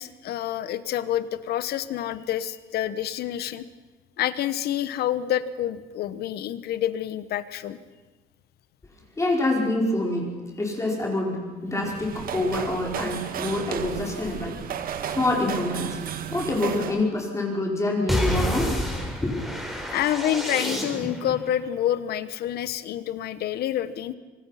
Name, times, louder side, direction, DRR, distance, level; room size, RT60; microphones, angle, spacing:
voice 1, 0.0-3.7 4.2-7.8 19.9-24.1, left 11 dB, 70° left, 14 dB, 1.2 m, -28 dB
voice 2, 9.2-10.3 10.6-14.6 15.1-16.0 16.3-18.8 19.2-19.4, left 2 dB, 15° left, -1 dB, 4.7 m, -26 dB
sound 1, 11.7-17.1, right 8 dB, 60° right, 1.7 m, -34 dB
sound 2, 18.1-21.3, equal, ahead, 4.6 m, -28 dB
25.5 x 19.5 x 5.8 m, 1.3 s
cardioid pair, 110°, 17 cm